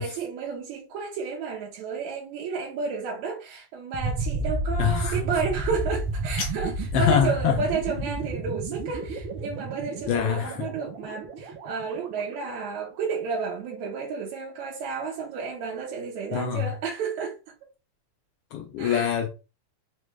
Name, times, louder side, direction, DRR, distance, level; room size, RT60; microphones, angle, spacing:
voice 1, 0.0-17.5 18.8-19.2, right 5 dB, 90° right, 2.1 m, -32 dB
sound 1, 3.9-12.8, right 2 dB, 70° right, 1.2 m, -32 dB
voice 2, 4.8-5.2 6.9-7.6 10.1-10.6 16.3-16.7 18.5-19.3, left 8 dB, 80° left, 1.3 m, -24 dB
sound 2, 5.9-7.0, left 5 dB, 65° left, 1.5 m, -38 dB
4.8 x 2.3 x 3.1 m
omnidirectional pair, 3.3 m